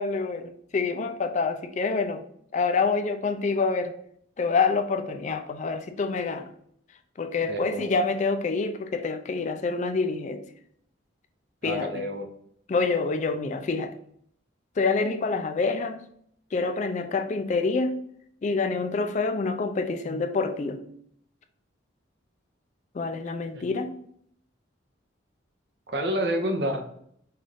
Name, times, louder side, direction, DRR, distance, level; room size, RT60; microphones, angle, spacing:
voice 1, 0.0-2.2 2.5-4.0 4.4-6.5 7.2-10.4 11.6-11.9 12.7-13.9 14.8-16.0 16.5-18.0 18.4-20.8 22.9-24.0, left 4 dB, 35° left, 7 dB, 0.3 m, -27 dB
voice 2, 7.5-7.9 11.6-12.3 23.5-23.6 25.9-26.9, equal, 55° right, 4 dB, 0.7 m, -28 dB
5.5 x 2.5 x 3.3 m, 0.68 s
head